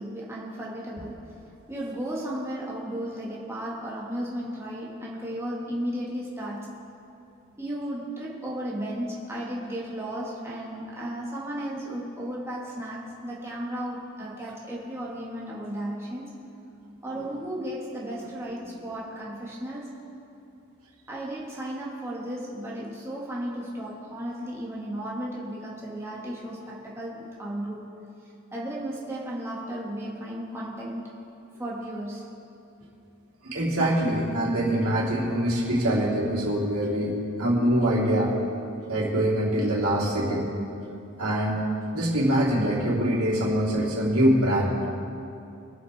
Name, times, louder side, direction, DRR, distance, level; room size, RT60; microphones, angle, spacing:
voice 1, 0.0-1.3 1.7-6.7 7.6-16.3 17.0-19.9 21.1-27.9 28.5-31.2 31.6-32.3, right 1 dB, 10° right, -6 dB, 1.7 m, -34 dB
voice 2, 33.4-38.3 38.9-40.5 41.2-41.7 41.9-44.9, right 1 dB, 80° right, -5 dB, 3.1 m, -24 dB
23.5 x 8.0 x 3.5 m, 2.7 s
head